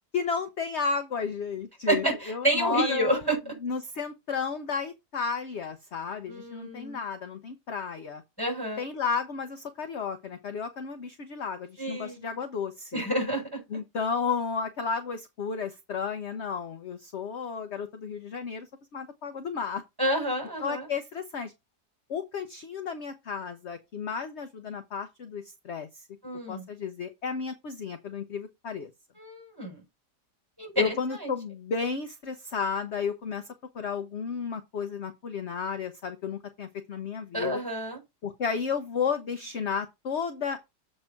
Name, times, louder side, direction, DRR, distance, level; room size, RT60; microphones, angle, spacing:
voice 1, 0.1-3.3 3.6-8.2 8.8-13.0 13.7-19.8 20.6-21.5 22.1-26.1 26.5-28.9 30.8-37.6 38.2-40.6, left 5 dB, 50° left, 0.9 m, -33 dB
voice 2, 1.9-3.4 6.3-7.0 8.4-8.8 11.8-12.3 12.9-13.6 20.0-20.9 26.2-26.6 29.2-29.8 30.6-31.3 37.3-38.0, right 1 dB, 10° right, 4.5 m, -29 dB
7.5 x 4.4 x 5.7 m
omnidirectional pair, 1.8 m